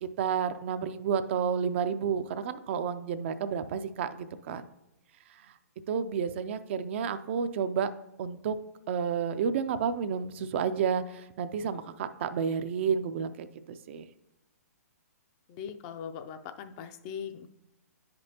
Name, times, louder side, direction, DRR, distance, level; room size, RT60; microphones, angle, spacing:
voice 1, 0.0-4.7 5.3-5.5 5.9-7.9 8.2-8.6 8.9-14.1, right 7 dB, 45° right, 11 dB, 0.4 m, -31 dB
voice 2, 15.5-17.5, left 7 dB, 30° left, 9 dB, 0.4 m, -40 dB
9.5 x 5.2 x 2.8 m, 0.90 s
hypercardioid pair, 135°, 9 cm